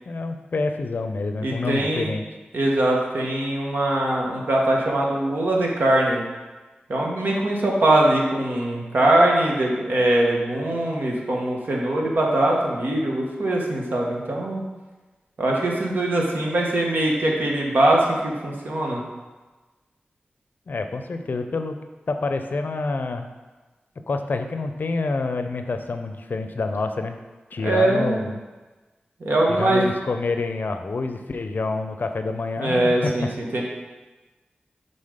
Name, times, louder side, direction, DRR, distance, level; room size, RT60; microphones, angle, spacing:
voice 1, 0.1-2.3 20.7-21.8 22.1-23.3 24.1-27.2 27.5-28.4 29.5-33.1, left 3 dB, 65° left, 7 dB, 0.5 m, -27 dB
voice 2, 1.4-2.1 2.5-6.2 6.9-14.6 15.4-19.0 27.6-28.3 29.2-29.8 32.6-33.6, right 1 dB, 70° right, -1 dB, 1.2 m, -22 dB
5.7 x 4.0 x 5.0 m, 1.2 s
wide cardioid pair, 80°, 3 cm